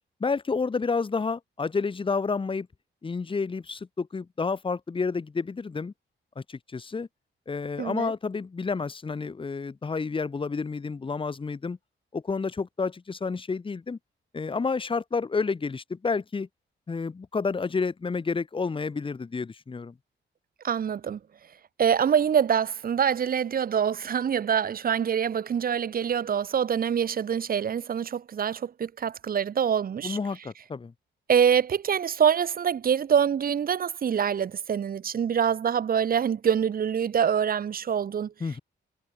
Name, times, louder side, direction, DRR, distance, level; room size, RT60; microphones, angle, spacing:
voice 1, 0.2-2.7 3.0-5.9 6.3-7.1 7.5-11.8 12.1-14.0 14.3-16.5 16.9-19.9 30.0-30.9 38.4-38.6, left 4 dB, 25° left, 3.1 m, -30 dB
voice 2, 7.8-8.1 20.6-21.2 21.8-30.2 31.3-38.3, right 8 dB, 45° right, 1.6 m, -25 dB
wide cardioid pair, 170°, 20 cm